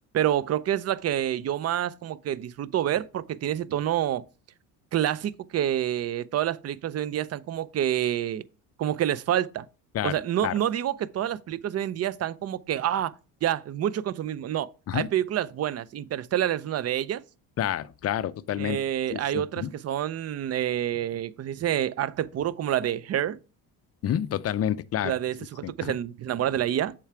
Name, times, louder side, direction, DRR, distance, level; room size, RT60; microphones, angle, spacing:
voice 1, 0.1-4.2 4.9-8.4 8.8-9.7 10.0-13.1 13.4-17.2 18.6-23.4 25.0-26.9, right 11 dB, 35° right, 0.5 m, -28 dB
voice 2, 9.9-10.6 14.9-15.1 17.6-18.8 19.1-19.7 24.0-25.1 25.6-25.9, left 10 dB, 35° left, 0.5 m, -29 dB
7.1 x 4.6 x 4.8 m
supercardioid pair, 80°, 44 cm